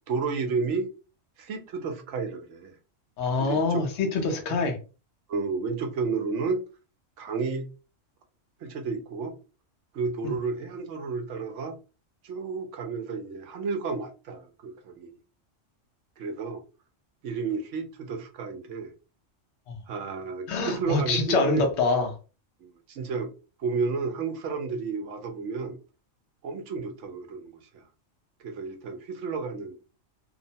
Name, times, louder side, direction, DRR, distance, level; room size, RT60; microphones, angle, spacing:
voice 1, 0.1-0.9 1.4-2.8 3.4-3.8 5.3-6.6 7.2-7.7 8.6-9.3 9.9-11.7 12.2-15.1 16.2-16.6 17.2-18.9 19.9-21.6 22.6-23.3 23.6-25.8 26.4-27.6 28.4-29.8, right 4 dB, 70° right, 0.9 m, -31 dB
voice 2, 3.2-4.8 10.2-10.3 20.5-22.2, left 3 dB, 65° left, 1.0 m, -25 dB
2.9 x 2.1 x 2.6 m
omnidirectional pair, 1.3 m